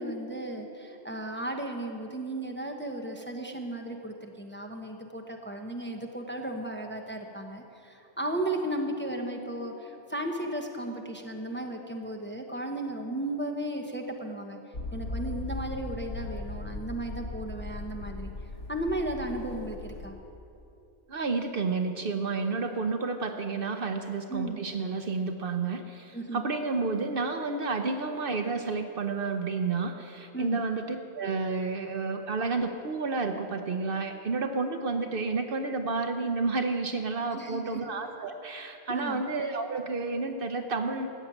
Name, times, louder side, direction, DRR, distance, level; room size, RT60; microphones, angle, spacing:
voice 1, 0.0-14.6 14.9-18.3 18.7-20.1 24.3-24.6 26.1-26.5 30.3-30.6 37.3-37.8 38.9-39.2, right 1 dB, 10° left, 2 dB, 0.9 m, -35 dB
Motor vehicle (road), 14.7-20.1, left 2 dB, 90° left, 1.4 m, -38 dB
voice 2, 21.1-41.1, right 4 dB, 55° right, 6 dB, 0.9 m, -30 dB
14.0 x 7.1 x 9.1 m, 2.8 s
omnidirectional pair, 1.2 m